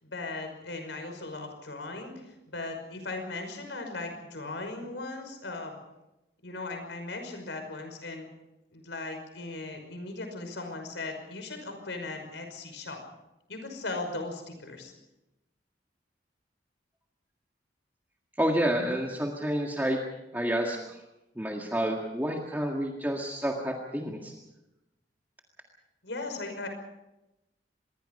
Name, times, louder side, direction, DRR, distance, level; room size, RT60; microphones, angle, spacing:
voice 1, 0.0-5.8 6.4-8.2 8.7-13.0 13.5-14.9 26.0-26.7, left 2 dB, 90° left, 5 dB, 5.5 m, -38 dB
voice 2, 18.4-20.0 20.3-21.0 21.4-24.3, equal, 10° right, 0 dB, 1.8 m, -29 dB
25.5 x 21.5 x 5.5 m, 0.96 s
head